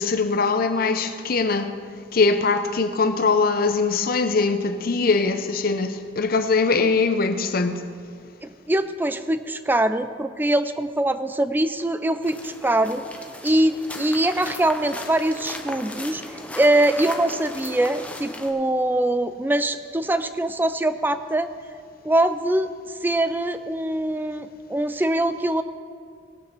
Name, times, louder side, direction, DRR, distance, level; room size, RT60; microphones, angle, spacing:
voice 1, 0.0-1.8 2.1-7.8, left 4 dB, 55° left, 0.7 m, -22 dB
voice 2, 8.4-13.0 13.4-16.2 16.6-21.5 22.0-22.7 23.0-25.6, right 1 dB, 10° right, 0.4 m, -23 dB
sound 1, 12.2-18.5, left 1 dB, 10° left, 0.8 m, -37 dB
18.5 x 6.4 x 6.0 m
head